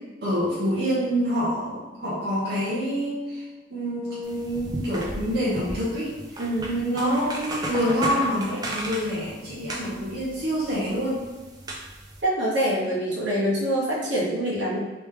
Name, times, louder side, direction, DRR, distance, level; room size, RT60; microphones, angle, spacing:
voice 1, 0.2-3.4 3.7-6.1 6.6-11.2, equal, 60° right, -9 dB, 0.9 m, -26 dB
sound 1, 4.2-12.2, right 1 dB, 20° right, 0.4 m, -35 dB
voice 2, 6.4-6.7 12.2-14.8, right 1 dB, 80° right, -6 dB, 1.2 m, -25 dB
3.2 x 3.1 x 3.4 m, 1.2 s
head